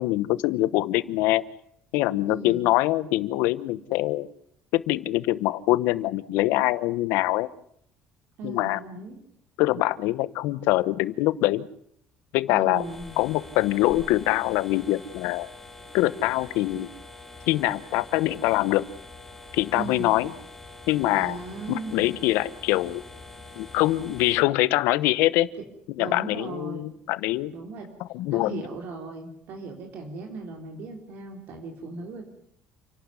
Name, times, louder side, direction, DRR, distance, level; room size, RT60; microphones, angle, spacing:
voice 1, 0.0-1.4 1.9-4.3 4.7-7.5 8.4-8.8 9.6-11.7 12.3-12.8 13.2-15.5 15.9-16.9 17.5-18.9 19.5-20.3 20.9-21.4 21.7-23.0 23.6-25.5 26.0-27.5 28.1-28.6, left 17 dB, 85° left, 16 dB, 1.0 m, -24 dB
voice 2, 2.3-2.7 8.4-9.2 12.5-13.2 19.7-20.2 21.1-22.1 26.0-26.9 27.5-27.9 28.3-32.3, right 3 dB, 65° right, 3 dB, 3.8 m, -37 dB
sound 1, 12.7-24.4, left 2 dB, 5° left, 2.9 m, -45 dB
29.0 x 12.0 x 9.7 m, 0.69 s
cardioid pair, 125°, 3 cm